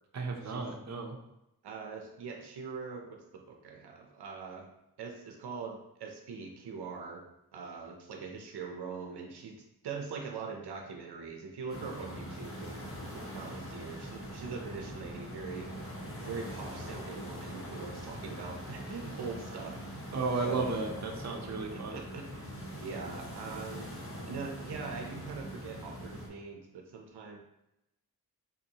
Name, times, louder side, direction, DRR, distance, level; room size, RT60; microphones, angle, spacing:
voice 1, 0.1-1.2 20.1-22.0, right 3 dB, 45° right, 2 dB, 0.6 m, -34 dB
voice 2, 1.6-4.7 5.0-7.2 7.5-12.8 13.1-19.8 20.4-20.9 21.3-21.4 21.7-23.9 24.2-27.4, right 5 dB, 90° right, 2 dB, 0.5 m, -42 dB
sound 1, 11.7-26.3, equal, 35° left, 0.9 m, -43 dB
4.1 x 2.6 x 2.8 m, 0.86 s
cardioid pair, 45°, 38 cm